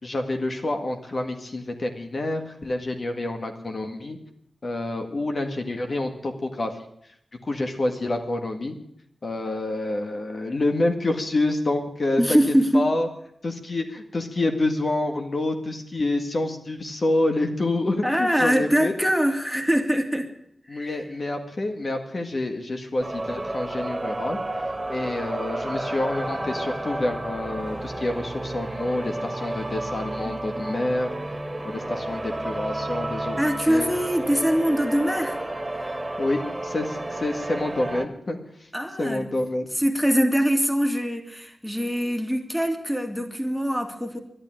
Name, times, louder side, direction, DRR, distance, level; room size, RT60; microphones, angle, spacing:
voice 1, 0.0-4.2 4.6-6.8 7.4-8.8 9.2-12.4 12.7-13.1 13.4-18.9 20.7-24.4 24.9-31.1 31.6-33.9 36.2-38.4 39.0-39.7, left 2 dB, 60° left, 4 dB, 1.9 m, -27 dB
voice 2, 12.2-12.8 18.0-20.3 20.7-21.0 30.3-30.8 33.4-35.4 35.7-36.0 38.7-39.3 39.7-44.2, equal, 5° left, 5 dB, 2.3 m, -23 dB
sound 1, 23.0-38.0, right 1 dB, 20° right, 2.1 m, -31 dB
12.0 x 11.5 x 8.9 m, 0.72 s
cardioid pair, 60°, 0 cm